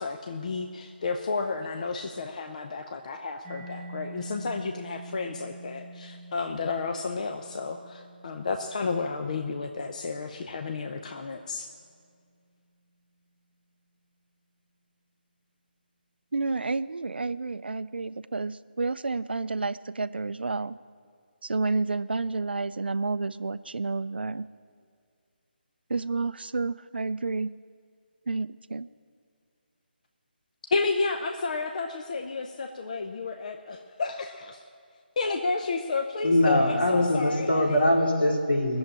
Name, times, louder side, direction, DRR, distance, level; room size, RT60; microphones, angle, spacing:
voice 1, 0.0-11.7 30.7-34.6 35.2-37.8, left 4 dB, 45° left, 5 dB, 0.7 m, -31 dB
Mallet percussion, 3.4-10.9, right 1 dB, 5° right, 1.6 m, -46 dB
voice 2, 16.3-20.8 21.4-24.5 25.9-27.5 28.3-28.9, right 3 dB, 70° right, 15 dB, 0.5 m, -30 dB
voice 3, 36.2-38.8, left 1 dB, 75° left, 0 dB, 2.8 m, -23 dB
19.5 x 7.3 x 8.8 m, 2.2 s
figure-of-eight pair, 150°, 6 cm